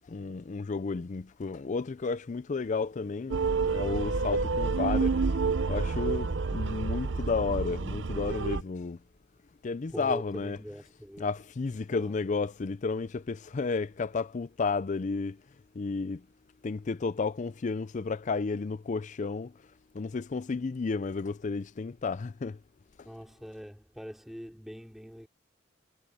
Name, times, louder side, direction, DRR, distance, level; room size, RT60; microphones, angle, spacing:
voice 1, 0.1-3.4 3.7-5.3 5.7-9.0 9.6-10.6 11.2-15.4 15.8-16.2 16.6-19.5 19.9-22.6, left 4 dB, 40° left, 0.4 m, -32 dB
sound 1, 3.3-8.6, right 4 dB, 65° right, 0.7 m, -29 dB
voice 2, 9.9-11.3 11.9-12.1 23.0-25.3, equal, ahead, 4.3 m, -43 dB
head